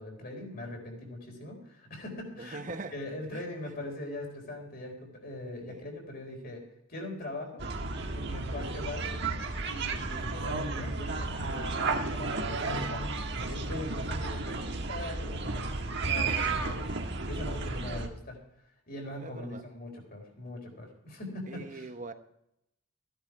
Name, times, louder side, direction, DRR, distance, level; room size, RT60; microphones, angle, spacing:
voice 1, 0.0-2.6 2.9-6.6 6.9-7.7 8.1-9.2 9.6-18.3 18.9-21.9, left 1 dB, 45° left, 4.1 m, -41 dB
voice 2, 2.4-2.9 3.3-3.7 5.7-5.8 8.5-8.8 14.4-14.7 17.8-18.0 19.2-19.6 21.5-22.1, right 3 dB, 40° right, 1.0 m, -43 dB
sound 1, 7.6-18.1, right 3 dB, 55° right, 1.4 m, -33 dB
15.5 x 10.5 x 4.6 m
head